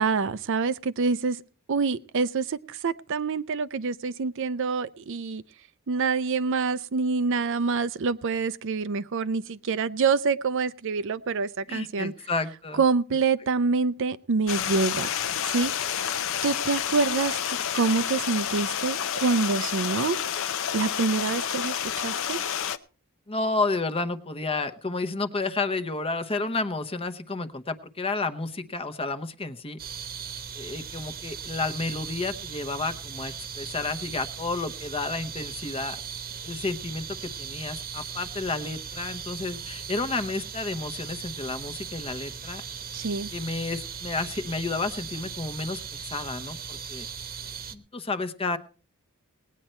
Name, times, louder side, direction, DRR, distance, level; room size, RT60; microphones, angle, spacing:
voice 1, 0.0-1.4 1.7-5.4 5.9-12.1 12.7-15.1 15.4-16.1 16.4-17.4 17.7-20.2 20.7-22.4 42.9-43.3, right 4 dB, 60° right, 0.5 m, -26 dB
voice 2, 11.7-12.8 23.3-29.8 30.5-36.0 36.4-42.6 43.3-47.1 47.7-48.6, left 3 dB, 25° left, 0.9 m, -31 dB
Stream, 14.5-22.8, left 9 dB, 65° left, 0.7 m, -29 dB
sound 1, 29.8-47.7, right 6 dB, 45° right, 1.0 m, -38 dB
19.0 x 9.1 x 4.4 m
head